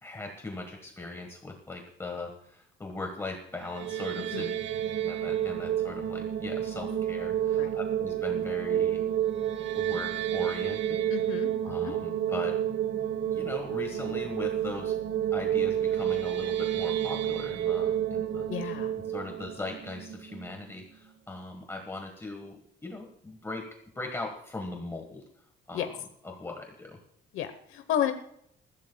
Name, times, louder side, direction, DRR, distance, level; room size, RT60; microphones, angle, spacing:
voice 1, 0.0-4.5 5.0-9.0 9.7-11.0 11.6-12.6 13.3-14.9 15.3-18.7 19.1-23.6 23.9-25.2 25.7-25.9 26.2-27.0, left 3 dB, 15° left, 2 dB, 1.4 m, -39 dB
sound 1, 3.6-20.7, right 10 dB, 65° right, 1.0 m, -30 dB
voice 2, 11.1-11.5 11.8-11.9 18.5-18.9 25.7-25.9 27.3-28.1, left 10 dB, 85° left, 7 dB, 1.0 m, -31 dB
21.0 x 15.0 x 2.3 m, 0.71 s
cardioid pair, 170°, 20 cm